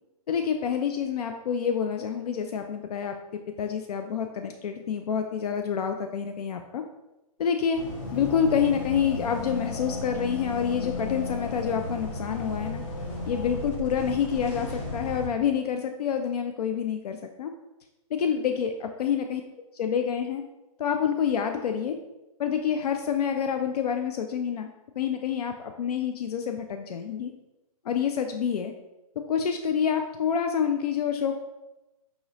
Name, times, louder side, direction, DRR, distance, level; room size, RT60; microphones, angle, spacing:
voice 1, 0.3-3.1 3.6-6.8 7.4-7.8 8.1-12.8 13.3-17.5 18.1-19.4 19.7-20.4 20.8-22.0 22.4-24.7 25.0-27.3 27.9-28.7 29.3-31.3, left 7 dB, 85° left, 5 dB, 0.4 m, -27 dB
sound 1, 7.7-15.3, left 2 dB, 50° left, 0.9 m, -34 dB
4.8 x 3.0 x 2.7 m, 1.0 s
hypercardioid pair, 165°, 19 cm